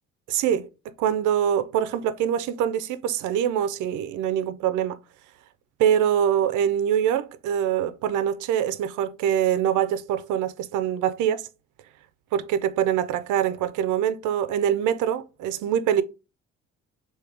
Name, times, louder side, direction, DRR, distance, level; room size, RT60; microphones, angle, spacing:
voice 1, 0.3-0.7 1.0-5.0 5.8-11.5 12.3-16.0, right 9 dB, 90° right, 0.5 m, -24 dB
3.5 x 2.8 x 4.6 m
cardioid pair, 90°, 30 cm